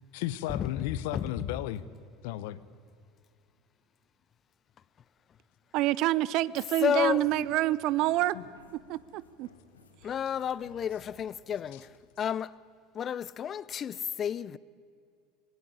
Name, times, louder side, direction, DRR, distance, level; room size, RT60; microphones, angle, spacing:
voice 1, 0.1-1.8 2.2-2.6 8.3-8.4 11.7-11.8, left 13 dB, 70° left, 0.8 m, -34 dB
voice 2, 5.7-8.4 8.7-9.5, right 15 dB, 60° right, 0.6 m, -27 dB
voice 3, 6.8-7.2 10.0-11.9 12.2-12.5 12.9-14.6, left 8 dB, 40° left, 0.6 m, -31 dB
sound 1, 6.9-12.4, left 3 dB, 90° left, 1.6 m, -58 dB
19.5 x 16.5 x 9.8 m
hypercardioid pair, 75°, 0 cm